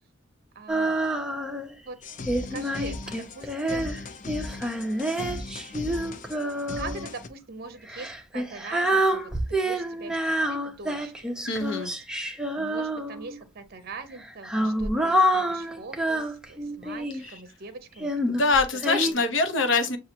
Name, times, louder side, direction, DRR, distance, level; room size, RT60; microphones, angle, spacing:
voice 1, 0.5-0.9 1.8-2.0 2.5-3.9 5.1-5.3 6.8-11.4 11.8-11.9 12.6-18.4 19.1-19.2, right 4 dB, 50° right, 0.6 m, -42 dB
Female singing, 0.7-1.7 2.3-7.1 7.9-13.4 14.2-17.3 18.0-19.1, equal, 5° right, 0.6 m, -27 dB
sound 1, 2.0-7.3, left 2 dB, 40° left, 0.5 m, -38 dB
voice 2, 11.5-11.9 18.3-20.0, left 3 dB, 65° left, 0.8 m, -24 dB
7.0 x 2.4 x 2.8 m
head